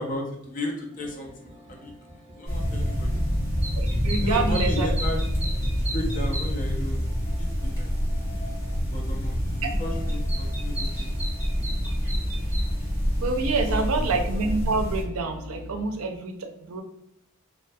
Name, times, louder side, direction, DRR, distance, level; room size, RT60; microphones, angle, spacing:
voice 1, 0.0-1.9 2.3-3.1 4.1-5.3 5.6-7.1 7.4-7.9 8.9-11.1 13.7-13.9, left 1 dB, 40° left, 0 dB, 0.5 m, -34 dB
sound 1, 0.9-15.8, left 1 dB, 25° right, 0.7 m, -43 dB
sound 2, 2.5-15.0, equal, 15° left, 1.0 m, -27 dB
voice 2, 3.8-4.9 9.6-9.8 11.9-12.0 12.9-16.8, right 3 dB, 75° right, 4 dB, 0.4 m, -28 dB
2.5 x 2.2 x 2.6 m, 0.78 s
head